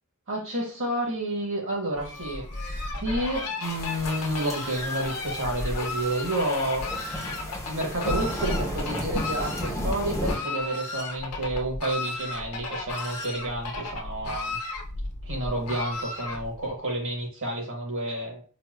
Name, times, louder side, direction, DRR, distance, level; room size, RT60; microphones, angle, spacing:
voice 1, 0.3-2.5 3.0-6.9 7.1-14.6 15.2-18.4, right 1 dB, 60° right, -1 dB, 1.3 m, -30 dB
Fowl, 1.9-16.7, left 2 dB, 90° left, 0.7 m, -34 dB
sound 1, 3.6-10.4, equal, 15° left, 0.5 m, -33 dB
4.1 x 2.1 x 2.4 m, 0.38 s
head